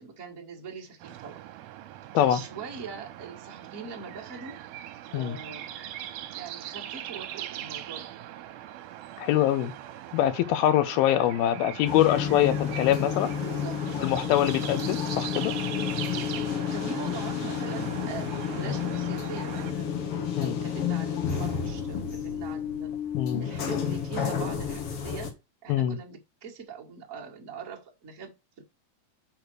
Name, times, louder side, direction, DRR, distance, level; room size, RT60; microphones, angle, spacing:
voice 1, 0.0-1.4 2.1-4.6 5.1-5.7 6.3-8.1 13.4-14.3 16.1-20.1 20.4-23.0 23.4-25.3 25.6-28.6, right 5 dB, 65° right, 0.8 m, -42 dB
sound 1, 1.0-19.7, right 12 dB, 85° right, 2.4 m, -40 dB
voice 2, 9.2-9.7 10.1-13.3 14.0-15.5 20.4-20.6 23.1-23.5 25.7-26.0, left 12 dB, 80° left, 2.6 m, -24 dB
sound 2, 11.8-25.3, left 8 dB, 65° left, 1.4 m, -31 dB
8.1 x 3.2 x 6.2 m
omnidirectional pair, 4.4 m